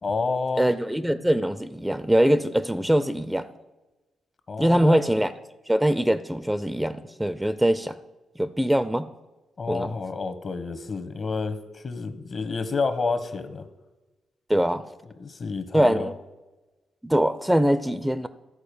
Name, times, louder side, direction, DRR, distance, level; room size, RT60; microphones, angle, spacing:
voice 1, 0.0-0.7 4.5-5.0 9.6-13.7 15.0-16.1, left 4 dB, 50° left, 11 dB, 1.1 m, -29 dB
voice 2, 0.6-3.5 4.6-5.3 5.7-8.0 8.4-9.1 9.7-9.9 14.5-14.8 15.7-16.1 17.0-18.3, right 1 dB, 5° right, 13 dB, 0.5 m, -22 dB
13.0 x 4.3 x 6.8 m, 1.1 s
supercardioid pair, 55°, 0 cm